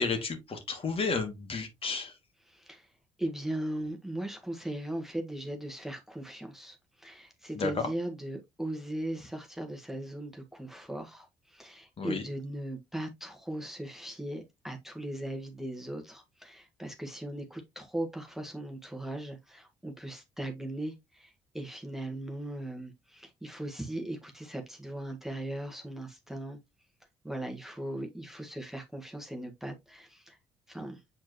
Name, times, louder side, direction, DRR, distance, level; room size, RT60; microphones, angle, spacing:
voice 1, 0.0-2.1 7.5-7.7 12.0-12.2, left 4 dB, 40° left, 2.2 m, -32 dB
voice 2, 2.5-2.9 3.2-26.6 27.2-30.4 30.7-31.0, right 1 dB, ahead, 1.5 m, -38 dB
7.7 x 4.3 x 2.9 m
figure-of-eight pair, 45°, 14 cm